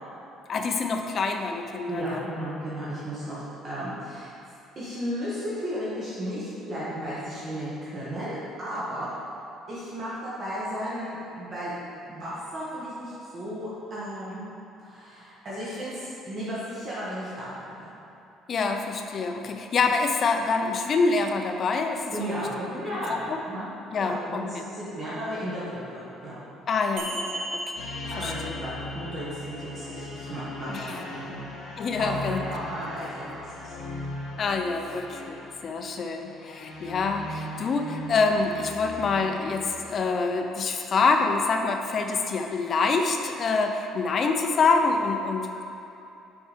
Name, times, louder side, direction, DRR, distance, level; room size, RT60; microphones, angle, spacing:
voice 1, 0.5-2.3 18.5-22.4 22.9-23.4 23.9-24.6 26.7-27.9 28.2-28.6 30.7-31.0 31.8-32.4 34.4-45.6, left 4 dB, 30° left, 4 dB, 0.5 m, -26 dB
voice 2, 1.9-4.3 4.7-9.1 9.7-14.4 14.8-17.9 22.1-23.7 24.0-26.4 28.1-31.4 32.0-33.7, equal, 30° right, -9 dB, 1.3 m, -34 dB
sound 1, 27.0-32.0, right 1 dB, 60° right, 1.3 m, -39 dB
sound 2, 27.8-40.3, left 1 dB, 65° left, 1.2 m, -39 dB
7.1 x 4.6 x 5.0 m, 2.9 s
cardioid pair, 175°, 0 cm